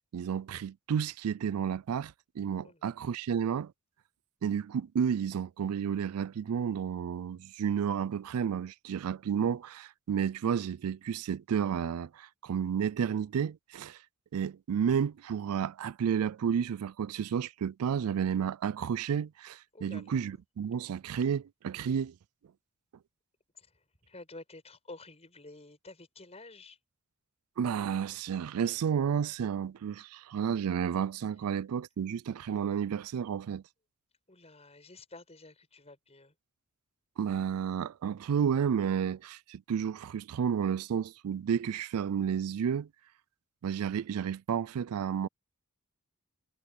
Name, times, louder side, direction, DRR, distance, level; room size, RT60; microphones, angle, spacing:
voice 1, 0.1-3.7 4.4-14.0 14.3-22.1 27.6-33.6 37.2-42.9 43.6-45.3, right 7 dB, 80° right, 0.4 m, -31 dB
voice 2, 19.7-20.4 23.5-26.8 31.4-31.5 34.3-36.4, left 2 dB, 30° left, 7.2 m, -51 dB
head